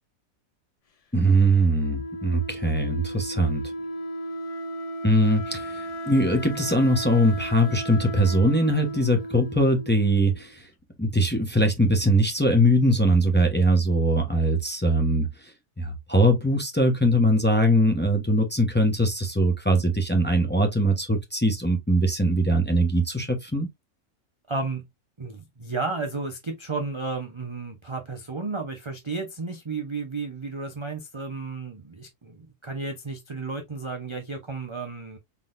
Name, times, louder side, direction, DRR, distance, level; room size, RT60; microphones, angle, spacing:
voice 1, 1.1-3.7 5.0-10.7 11.0-23.7, right 1 dB, 10° left, 0.8 m, -21 dB
Wind instrument woodwind instrument, 1.7-10.5, right 1 dB, 65° left, 0.3 m, -35 dB
voice 2, 24.5-24.8 25.2-35.2, right 3 dB, 30° right, 0.5 m, -33 dB
4.6 x 3.9 x 2.5 m
omnidirectional pair, 1.5 m